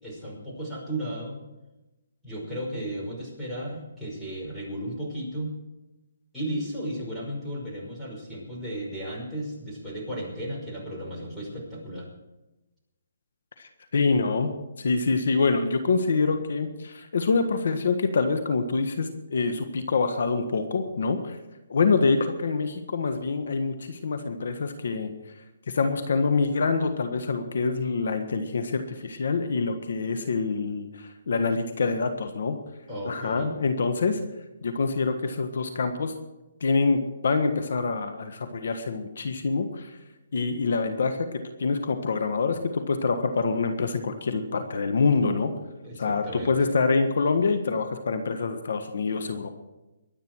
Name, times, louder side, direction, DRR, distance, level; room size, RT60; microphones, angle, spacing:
voice 1, 0.0-1.4 2.2-5.6 6.3-12.1 32.9-33.6 45.8-46.5, right 1 dB, ahead, -6 dB, 5.6 m, -34 dB
voice 2, 13.6-14.5 14.8-21.4 21.7-25.1 25.7-32.6 33.0-34.2 34.6-36.1 36.6-39.9 40.3-45.5 46.0-49.5, left 4 dB, 70° left, 9 dB, 1.5 m, -26 dB
23.0 x 9.1 x 4.7 m, 1.0 s
hypercardioid pair, 155°, 0 cm